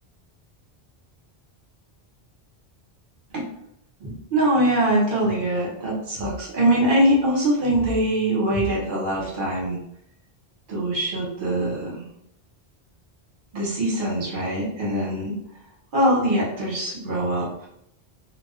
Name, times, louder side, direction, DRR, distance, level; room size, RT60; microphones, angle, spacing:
voice 1, 4.0-9.8 10.7-12.0 13.5-15.3 15.9-17.5, right 1 dB, 55° right, -4 dB, 1.0 m, -23 dB
2.3 x 2.2 x 2.4 m, 0.75 s
omnidirectional pair, 1.0 m